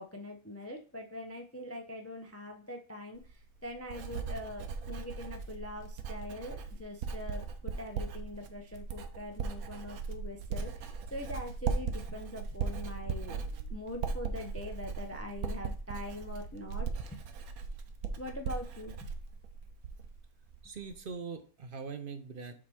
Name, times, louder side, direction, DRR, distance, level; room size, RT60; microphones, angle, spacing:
voice 1, 0.0-13.4 13.7-17.2 18.2-19.1, left 1 dB, 20° left, 4 dB, 0.4 m, -43 dB
Writing, 3.2-20.2 20.5-21.0, right 5 dB, 80° right, 1.2 m, -38 dB
voice 2, 20.6-22.5, right 5 dB, 50° right, 8 dB, 0.7 m, -42 dB
7.3 x 3.6 x 4.3 m, 0.39 s
omnidirectional pair, 1.5 m